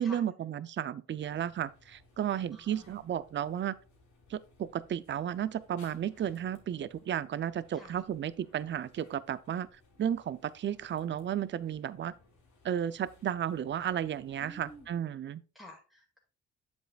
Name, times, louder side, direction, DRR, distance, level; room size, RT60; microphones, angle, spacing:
voice 1, 0.0-3.8 4.3-9.7 10.0-12.1 12.6-15.4, right 10 dB, 40° right, 0.5 m, -33 dB
sound 1, 1.2-15.0, left 3 dB, 75° left, 3.0 m, -63 dB
voice 2, 2.5-2.9 7.7-7.9 14.4-14.9 15.5-16.2, left 1 dB, ahead, 2.1 m, -50 dB
7.9 x 7.3 x 2.4 m
cardioid pair, 90°, 30 cm